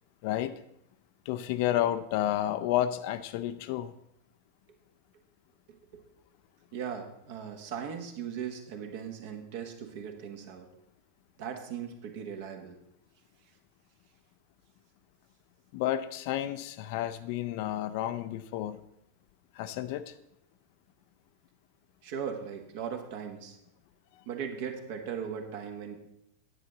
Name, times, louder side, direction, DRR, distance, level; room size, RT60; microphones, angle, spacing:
voice 1, 0.2-0.5 1.3-3.9 15.7-18.8 19.5-20.1, left 12 dB, 45° left, 13 dB, 0.5 m, -31 dB
voice 2, 5.7-6.0 6.7-10.7 11.4-12.8 22.0-23.6 24.2-26.0, right 7 dB, 50° right, 5 dB, 1.3 m, -38 dB
9.8 x 8.6 x 3.8 m, 0.79 s
figure-of-eight pair, 90°, 0 cm